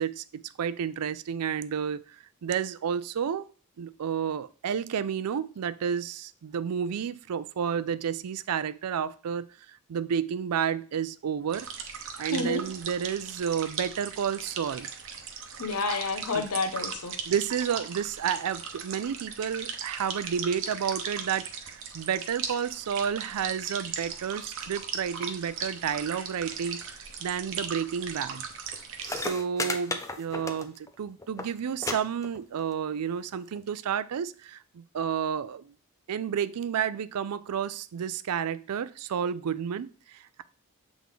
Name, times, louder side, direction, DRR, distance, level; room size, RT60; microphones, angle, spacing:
voice 1, 0.0-2.0 2.4-3.5 3.8-11.7 12.2-14.9 16.3-16.5 17.3-26.8 27.2-28.5 29.1-35.7 36.1-40.4, right 7 dB, 85° right, 0.4 m, -31 dB
sound 1, 11.5-29.3, right 6 dB, 60° right, 0.8 m, -38 dB
voice 2, 12.3-12.6 15.6-17.2, left 3 dB, 80° left, 0.9 m, -29 dB
sound 2, 28.7-28.8 29.0-30.9 31.2-31.5 31.8-31.9 32.2-32.7 33.6-33.7, left 2 dB, 15° left, 0.5 m, -33 dB
7.4 x 3.6 x 3.6 m
head